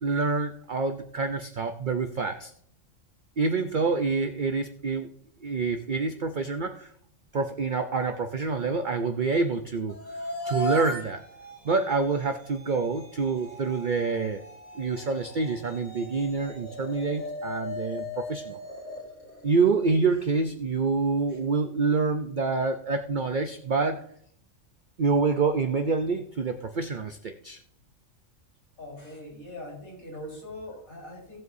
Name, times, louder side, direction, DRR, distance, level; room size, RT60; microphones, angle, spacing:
voice 1, 0.0-2.5 3.4-5.1 5.4-6.9 7.3-10.0 10.4-11.2 11.6-14.4 14.7-18.6 19.4-24.0 25.0-27.6, right 4 dB, 45° right, 6 dB, 0.7 m, -27 dB
sound 1, 9.9-20.1, left 2 dB, 60° left, 3.6 m, -38 dB
voice 2, 28.8-31.4, left 1 dB, 90° left, -3 dB, 4.7 m, -41 dB
17.5 x 8.0 x 2.7 m, 0.65 s
omnidirectional pair, 1.4 m